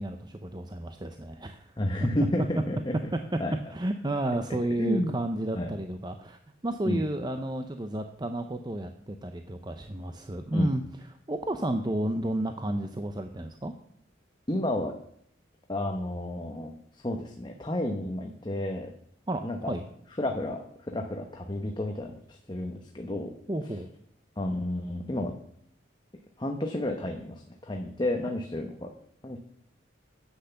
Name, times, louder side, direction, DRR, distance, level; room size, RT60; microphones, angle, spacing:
voice 1, 0.0-1.7 2.0-2.1 3.7-10.8 11.3-13.7 19.3-19.8 23.5-23.9, right 1 dB, 20° right, 6 dB, 0.6 m, -32 dB
voice 2, 1.8-2.9 3.4-3.6 4.8-5.1 5.5-5.7 6.8-7.0 10.5-10.7 14.5-14.9 15.7-18.9 19.4-19.7 20.2-23.3 24.4-25.3 26.4-28.9 29.2-29.4, left 1 dB, 25° left, 3 dB, 0.9 m, -31 dB
10.0 x 8.1 x 6.8 m, 0.68 s
head